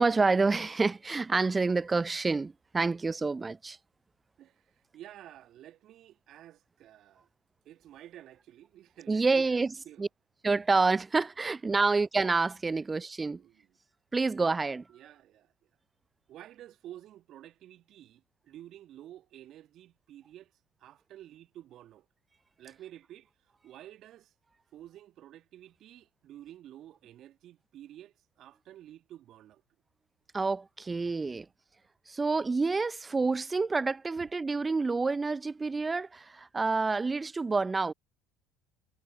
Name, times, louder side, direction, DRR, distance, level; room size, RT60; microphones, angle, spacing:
voice 1, 0.0-3.8 9.1-9.7 10.0-10.1 10.4-13.4 14.1-14.8 30.3-31.5 32.1-37.9, right 3 dB, 20° right, 0.5 m, -28 dB
voice 2, 4.4-7.3 7.6-10.0 13.3-13.7 14.9-15.5 16.3-20.5 20.8-22.1 22.6-24.3 24.7-29.6 31.3-31.4 34.2-34.3, right 12 dB, 50° right, 1.5 m, -51 dB
figure-of-eight pair, 65°, 0 cm